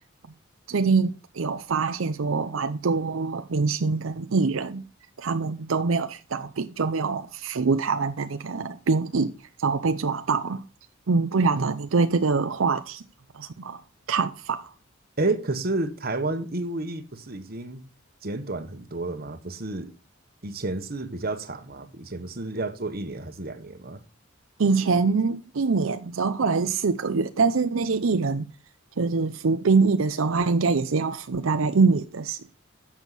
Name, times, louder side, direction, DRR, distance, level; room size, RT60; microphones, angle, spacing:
voice 1, 0.7-4.8 5.2-9.3 9.6-10.6 11.1-13.0 13.3-13.8 14.1-14.7 24.6-28.5 29.0-32.6, right 4 dB, 85° right, 0.6 m, -24 dB
voice 2, 15.2-17.9 18.2-19.9 20.4-24.0, right 2 dB, 50° right, 1.3 m, -30 dB
11.0 x 7.3 x 4.0 m
head